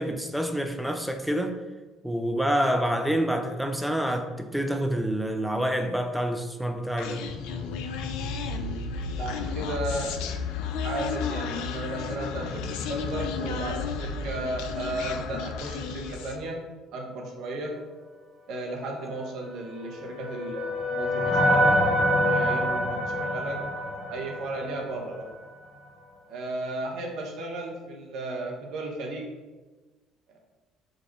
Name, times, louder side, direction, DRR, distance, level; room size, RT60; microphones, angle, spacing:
voice 1, 0.0-1.6 2.0-7.3, equal, ahead, 0.4 m, -27 dB
Human voice, 7.0-16.5, left 5 dB, 65° left, 0.3 m, -32 dB
voice 2, 9.1-10.1 10.8-16.6 16.9-17.8 18.5-21.7 22.1-25.3 26.3-29.3, right 2 dB, 60° right, 0.8 m, -34 dB
sound 1, 19.6-25.0, equal, 40° left, 0.7 m, -25 dB
5.0 x 2.4 x 3.1 m
figure-of-eight pair, 55°, 0 cm